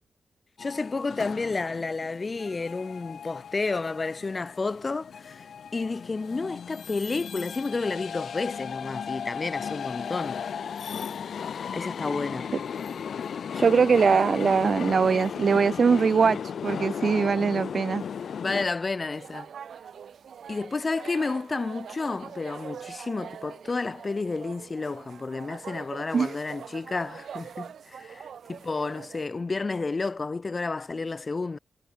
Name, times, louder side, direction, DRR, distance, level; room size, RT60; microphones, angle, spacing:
sound 1, 0.6-18.7, left 7 dB, 70° left, 7.2 m, -36 dB
voice 1, 0.6-10.4 11.7-12.6 18.4-19.5 20.5-31.6, left 3 dB, 30° left, 4.4 m, -31 dB
voice 2, 13.5-18.0 26.1-26.3, right 5 dB, 50° right, 0.6 m, -22 dB
sound 2, 19.1-29.2, right 8 dB, 80° right, 5.8 m, -43 dB
wide cardioid pair, 130°, 0 cm